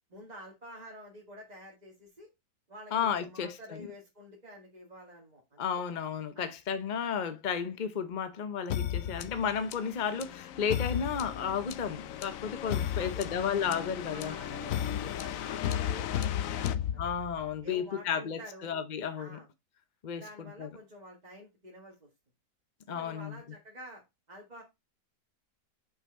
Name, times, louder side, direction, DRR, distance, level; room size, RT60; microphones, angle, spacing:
voice 1, 0.1-2.3 2.7-5.6 6.3-6.5 13.0-17.1 17.6-18.7 19.2-19.5 20.1-22.1 22.9-24.6, equal, 25° right, 2.1 m, -49 dB
voice 2, 2.9-3.6 5.6-14.3 17.0-19.4 20.0-20.2 20.6-20.7 22.9-23.4, left 7 dB, 50° left, 0.5 m, -33 dB
sound 1, 8.7-17.5, left 10 dB, 65° left, 0.9 m, -34 dB
6.2 x 5.2 x 5.2 m
omnidirectional pair, 1.8 m